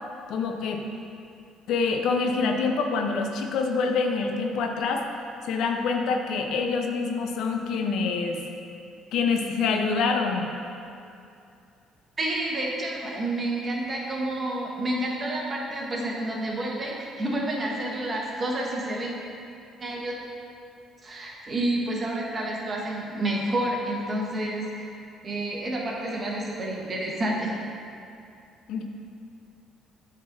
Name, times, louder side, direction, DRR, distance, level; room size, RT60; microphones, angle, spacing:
voice 1, 0.3-0.8 1.7-5.0 5.4-8.4 9.1-10.5 28.7-28.8, left 4 dB, 70° left, 3 dB, 0.5 m, -26 dB
voice 2, 12.2-19.1 19.8-20.2 21.0-24.9 25.2-27.5, right 1 dB, 30° right, -2 dB, 1.3 m, -29 dB
8.6 x 3.7 x 4.0 m, 2.5 s
cardioid pair, 95°, 0 cm